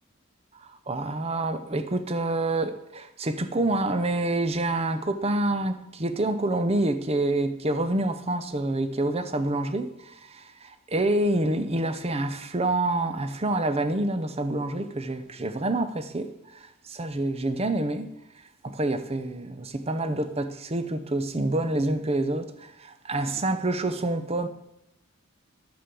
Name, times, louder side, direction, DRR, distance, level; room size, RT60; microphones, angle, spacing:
voice 1, 0.6-16.6 16.8-18.1 18.6-24.5, right 2 dB, 30° right, 0.7 m, -27 dB
9.3 x 6.9 x 6.9 m
head